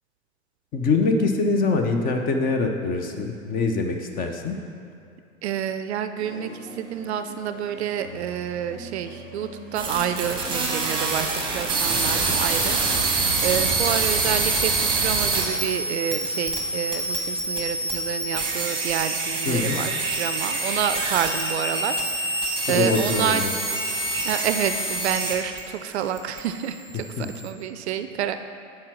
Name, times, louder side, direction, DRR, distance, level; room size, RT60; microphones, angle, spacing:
voice 1, 0.7-4.6 19.4-19.8 22.7-23.5 27.2-27.3, left 3 dB, 20° left, 4 dB, 0.6 m, -24 dB
voice 2, 5.4-23.4 24.2-28.3, right 9 dB, 55° right, 9 dB, 0.5 m, -28 dB
Waiting and Watching, 6.2-14.4, right 1 dB, 55° left, 1.6 m, -41 dB
sound 1, 9.7-25.6 25.9-27.5, right 3 dB, 10° right, 1.1 m, -26 dB
7.2 x 4.6 x 6.1 m, 2.5 s
figure-of-eight pair, 95°, 39 cm